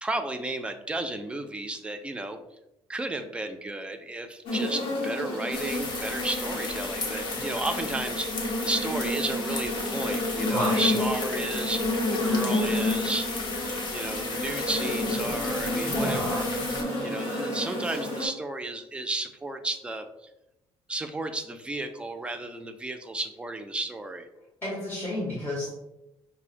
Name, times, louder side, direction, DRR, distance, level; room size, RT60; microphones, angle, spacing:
voice 1, 0.0-2.4 2.9-13.3 13.9-16.5 17.0-20.1 20.9-24.3, right 2 dB, 10° right, 6 dB, 0.3 m, -33 dB
sound 1, 4.5-18.3, left 1 dB, 85° left, 1.0 m, -30 dB
sound 2, 5.5-16.8, left 3 dB, 60° left, 0.8 m, -35 dB
voice 2, 10.5-10.9 15.8-16.4 24.6-25.7, left 1 dB, 20° left, -6 dB, 0.9 m, -30 dB
5.6 x 2.1 x 2.5 m, 0.88 s
cardioid pair, 130°, 9 cm